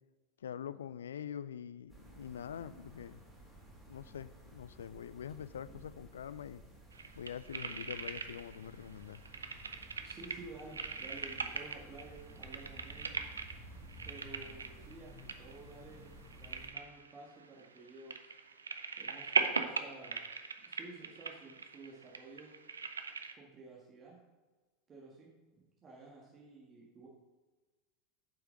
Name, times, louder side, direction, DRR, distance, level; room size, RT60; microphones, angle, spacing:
voice 1, 0.4-3.2 3.9-6.6 7.1-9.2, left 8 dB, 70° left, 16 dB, 0.3 m, -44 dB
sound 1, 1.9-16.7, right 1 dB, 5° right, 2.9 m, -54 dB
sound 2, 6.9-8.7 8.9-23.3, right 5 dB, 75° right, 0.5 m, -40 dB
voice 2, 10.0-13.2 14.0-16.1 16.4-18.2 19.0-20.3 20.7-22.5 23.4-24.2 24.9-25.3 25.8-27.1, right 3 dB, 25° right, -4 dB, 1.6 m, -52 dB
7.6 x 5.6 x 5.0 m, 1.2 s
figure-of-eight pair, 80°, 0 cm